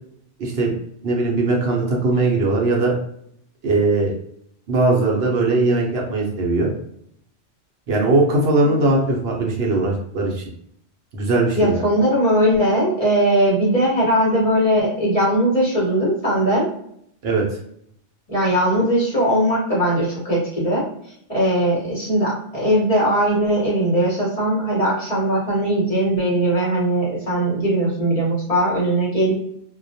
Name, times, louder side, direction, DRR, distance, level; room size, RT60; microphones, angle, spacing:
voice 1, 0.4-0.7 1.0-2.9 3.6-4.1 4.7-6.7 7.9-10.4 11.1-11.9 17.2-17.5, right 2 dB, 65° right, -1 dB, 0.8 m, -19 dB
voice 2, 11.5-16.7 18.3-20.8 21.3-29.3, right 1 dB, 35° left, -6 dB, 0.8 m, -19 dB
2.2 x 2.1 x 2.6 m, 0.69 s
omnidirectional pair, 1.2 m